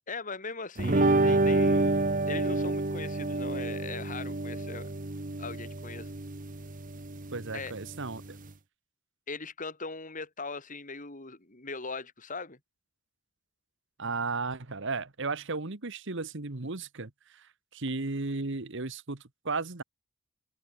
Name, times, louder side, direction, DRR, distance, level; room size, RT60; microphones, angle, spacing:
voice 1, 0.1-4.9 5.4-6.1 7.5-7.7 9.3-12.6, left 3 dB, 35° left, 2.9 m, -40 dB
sound 1, 0.8-8.5, right 2 dB, 40° right, 1.2 m, -28 dB
voice 2, 7.3-8.4 14.0-19.8, right 3 dB, 60° right, 1.4 m, -35 dB
open air
head